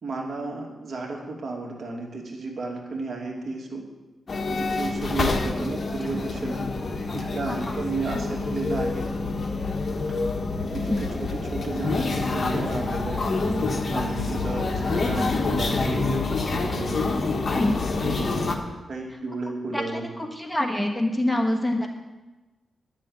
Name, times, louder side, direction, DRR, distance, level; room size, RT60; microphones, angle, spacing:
voice 1, 0.0-3.8 4.5-6.6 7.1-9.1 10.7-13.6 13.9-16.1 16.5-17.0 18.0-18.5 18.9-20.1, right 3 dB, 60° right, 0 dB, 2.5 m, -33 dB
sound 1, 4.3-18.6, left 3 dB, 45° left, 1.6 m, -27 dB
voice 2, 7.5-7.8 8.1-8.4 10.9-11.0 15.2-15.4 17.5-17.7 19.7-21.9, left 1 dB, 5° left, 1 dB, 1.4 m, -27 dB
10.5 x 6.7 x 9.4 m, 1.1 s
wide cardioid pair, 110°, 0 cm